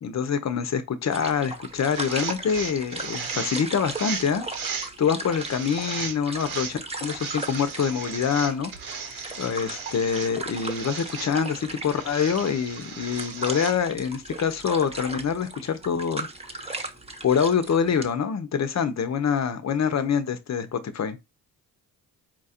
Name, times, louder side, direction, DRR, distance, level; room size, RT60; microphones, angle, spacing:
voice 1, 0.0-4.4 5.0-8.7 9.4-16.8 17.2-21.2, left 7 dB, 50° left, 0.9 m, -25 dB
sound 1, 1.1-18.1, right 2 dB, 15° right, 1.0 m, -37 dB
sound 2, 1.9-4.9 5.3-6.7 7.1-10.3 10.5-11.3 11.9-13.7, right 6 dB, 75° right, 1.1 m, -36 dB
4.5 x 2.5 x 4.3 m
cardioid pair, 70°, 35 cm